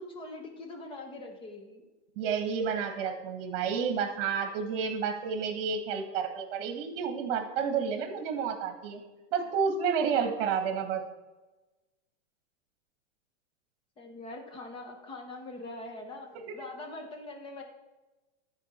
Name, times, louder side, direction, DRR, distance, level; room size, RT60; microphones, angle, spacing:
voice 1, 0.0-1.8 9.4-9.5 14.0-16.3 16.5-17.6, left 2 dB, 15° left, 3 dB, 1.0 m, -43 dB
voice 2, 2.1-9.0 9.3-11.0 16.5-16.6, right 6 dB, 50° right, 6 dB, 1.7 m, -30 dB
13.0 x 4.5 x 4.3 m, 1.1 s
supercardioid pair, 155°, 37 cm